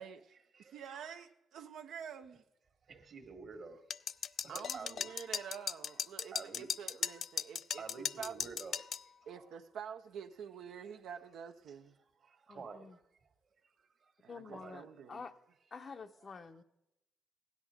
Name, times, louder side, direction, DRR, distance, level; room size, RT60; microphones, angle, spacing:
voice 1, 0.0-2.4 4.5-8.4 9.3-12.0 14.2-15.3, right 7 dB, 75° right, 0.6 m, -48 dB
voice 2, 0.5-1.2 2.9-3.8 4.4-5.1 6.3-6.7 7.7-9.0 9.3-9.4 12.2-13.0 13.8-14.9 16.2-16.3, right 4 dB, 50° right, 1.5 m, -50 dB
sound 1, 3.9-9.0, left 8 dB, 60° left, 0.3 m, -38 dB
voice 3, 12.5-13.0 14.3-15.3 15.7-16.6, left 5 dB, 40° left, 0.7 m, -48 dB
16.0 x 10.5 x 3.6 m
cardioid pair, 90°, 0 cm